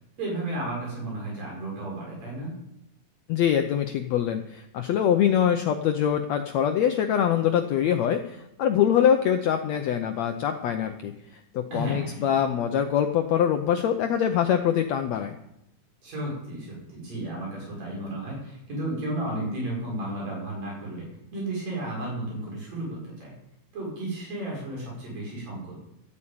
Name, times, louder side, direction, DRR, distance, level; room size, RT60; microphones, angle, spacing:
voice 1, 0.2-2.5 11.7-12.5 16.0-23.3 23.7-25.7, right 1 dB, 45° right, -3 dB, 7.4 m, -33 dB
voice 2, 3.3-15.4, left 9 dB, 85° left, 6 dB, 1.5 m, -24 dB
13.0 x 8.6 x 8.8 m, 0.82 s
omnidirectional pair, 4.1 m